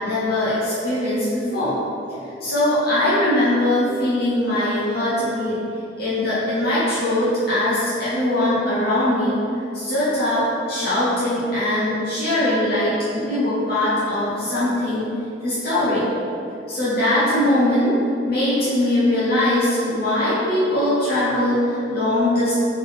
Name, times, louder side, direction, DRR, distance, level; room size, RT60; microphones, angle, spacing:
voice 1, 0.0-1.8 2.4-5.5 6.0-9.4 9.7-15.1 15.4-16.0 16.7-18.0 18.3-22.5, left 1 dB, 55° left, -11 dB, 0.9 m, -21 dB
3.7 x 3.4 x 3.7 m, 2.8 s
head